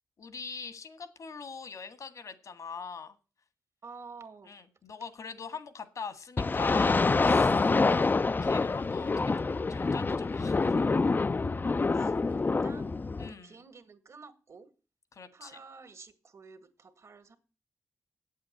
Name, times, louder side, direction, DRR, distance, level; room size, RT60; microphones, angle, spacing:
voice 1, 0.2-3.2 4.4-7.5 8.4-11.0 13.2-13.6 15.1-15.6, left 5 dB, 70° left, 1.7 m, -42 dB
voice 2, 3.8-4.5 11.9-14.7 15.3-17.4, right 4 dB, 60° right, 1.9 m, -51 dB
sound 1, 6.4-13.3, left 3 dB, 35° left, 0.5 m, -26 dB
8.6 x 7.5 x 8.4 m
cardioid pair, 50°, 6 cm